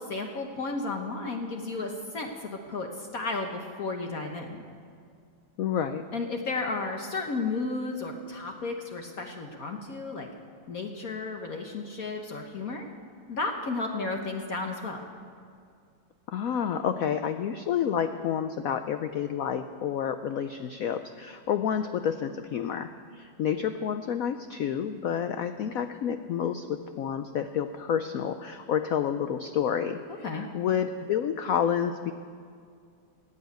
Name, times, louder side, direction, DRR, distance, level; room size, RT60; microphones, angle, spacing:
voice 1, 0.0-4.6 6.1-10.3 10.7-12.9 13.3-15.1 30.1-30.5, left 3 dB, 55° left, 3 dB, 1.3 m, -33 dB
voice 2, 5.6-6.0 16.3-32.1, left 8 dB, 80° left, 9 dB, 0.7 m, -29 dB
15.0 x 8.5 x 9.2 m, 2.2 s
omnidirectional pair, 2.1 m